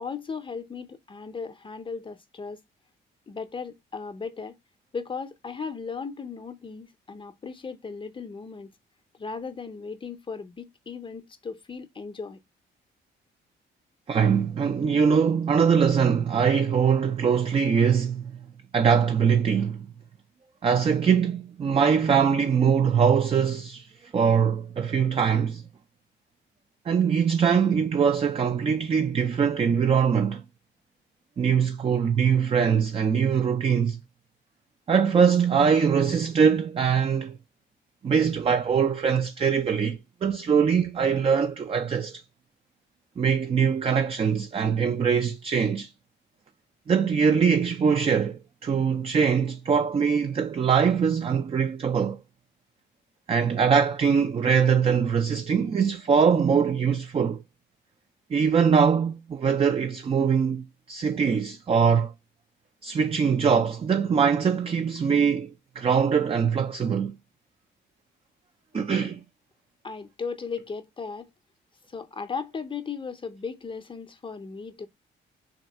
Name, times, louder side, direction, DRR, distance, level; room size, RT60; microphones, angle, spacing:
voice 1, 0.0-2.6 3.3-4.6 4.9-8.7 9.1-12.4 69.8-71.3 71.9-74.9, left 5 dB, 25° left, 0.6 m, -36 dB
voice 2, 14.1-18.3 18.7-19.9 20.6-25.6 26.9-30.4 31.4-34.0 34.9-37.4 38.0-42.2 43.2-45.9 46.9-52.2 53.3-57.4 58.3-62.1 62.8-67.2 68.7-69.2, right 6 dB, 30° right, 0.4 m, -22 dB
3.6 x 2.3 x 4.0 m
cardioid pair, 90°, 20 cm